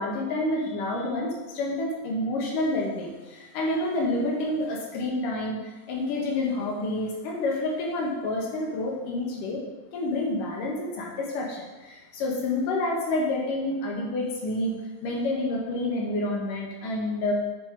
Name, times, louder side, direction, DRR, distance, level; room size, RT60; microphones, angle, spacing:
voice 1, 0.0-5.6 5.9-9.6 9.9-14.7 15.0-17.3, left 2 dB, 75° left, -1 dB, 3.0 m, -28 dB
8.6 x 6.1 x 5.2 m, 1.2 s
omnidirectional pair, 3.9 m